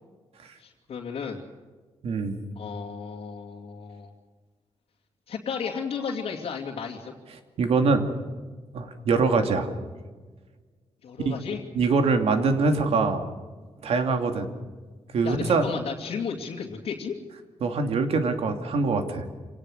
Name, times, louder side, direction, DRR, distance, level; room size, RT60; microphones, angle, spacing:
voice 1, 0.6-1.4 2.6-4.1 5.3-7.1 11.0-11.6 15.2-17.2, left 6 dB, 65° left, -2 dB, 2.5 m, -33 dB
voice 2, 2.0-2.4 7.6-8.0 8.7-9.7 11.2-11.4 11.7-13.3 13.8-14.5 15.1-15.6 17.6-19.2, right 4 dB, 70° right, 6 dB, 2.6 m, -23 dB
26.5 x 18.5 x 6.6 m, 1.4 s
wide cardioid pair, 145°, 11 cm